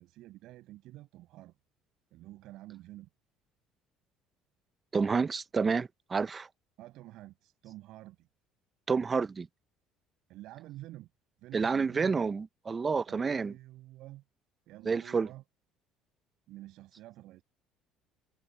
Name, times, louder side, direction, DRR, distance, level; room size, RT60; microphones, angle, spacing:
voice 1, 0.0-1.5 2.1-3.1 6.8-8.3 10.3-11.1 11.4-12.4 13.1-14.2 14.7-15.4 16.5-17.4, right 16 dB, 70° right, 6.4 m, -49 dB
voice 2, 4.9-6.5 8.9-9.5 11.5-13.5 14.8-15.3, right 5 dB, 30° right, 1.0 m, -29 dB
supercardioid pair, 80°, 0 cm